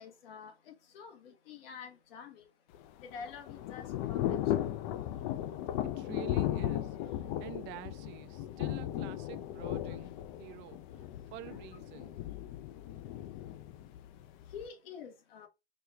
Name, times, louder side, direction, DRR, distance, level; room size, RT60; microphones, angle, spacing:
voice 1, 0.0-2.5 3.0-4.7 14.5-15.5, left 6 dB, 70° left, 1.1 m, -48 dB
Thunder / Rain, 2.7-14.7, left 12 dB, 50° left, 0.5 m, -36 dB
voice 2, 5.8-10.1 10.4-10.8 11.3-12.2, right 15 dB, 40° right, 0.5 m, -48 dB
4.7 x 2.3 x 3.1 m
hypercardioid pair, 115°, 30 cm